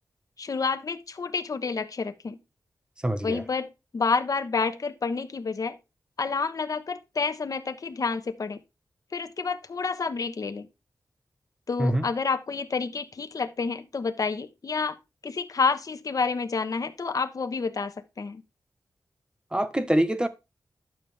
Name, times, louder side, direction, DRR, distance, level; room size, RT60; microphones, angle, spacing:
voice 1, 0.4-2.4 3.2-5.8 6.2-8.6 9.1-10.7 11.7-15.0 15.2-18.4, left 4 dB, 60° left, 1.1 m, -29 dB
voice 2, 3.0-3.4 11.8-12.1 19.5-20.3, right 1 dB, 15° right, 1.2 m, -24 dB
11.5 x 7.2 x 3.4 m
wide cardioid pair, 100°, 7 cm